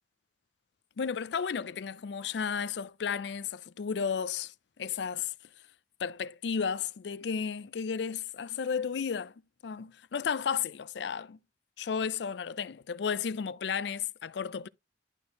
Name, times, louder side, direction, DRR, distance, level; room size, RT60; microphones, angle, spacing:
voice 1, 1.0-5.3 6.0-9.3 9.6-11.4 11.8-14.7, left 6 dB, 70° left, 0.4 m, -33 dB
11.5 x 4.4 x 2.8 m
head